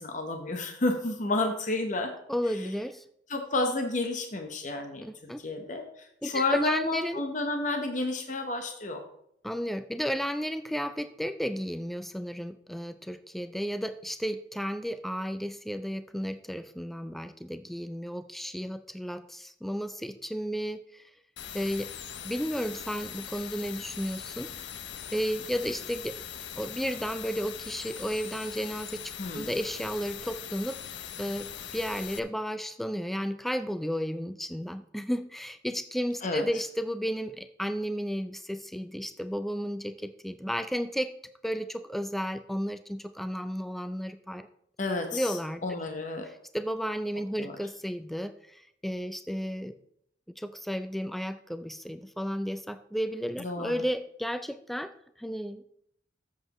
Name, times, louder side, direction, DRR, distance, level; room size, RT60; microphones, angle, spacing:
voice 1, 0.0-2.1 2.5-2.7 3.3-9.0 29.2-29.5 36.2-36.4 44.8-45.3 45.6-46.3 47.4-47.6 53.4-53.8, left 2 dB, 40° left, 4 dB, 0.9 m, -31 dB
voice 2, 2.3-3.0 5.0-5.4 6.2-7.2 9.4-21.0 21.5-21.9 22.2-24.5 25.1-26.2 26.6-30.8 31.2-41.1 41.4-44.5 45.1-45.6 46.5-49.7 50.4-54.9 55.2-55.6, equal, ahead, 10 dB, 0.3 m, -33 dB
sound 1, 21.4-32.2, left 9 dB, 70° left, 0.6 m, -41 dB
13.5 x 7.4 x 3.0 m, 0.72 s
head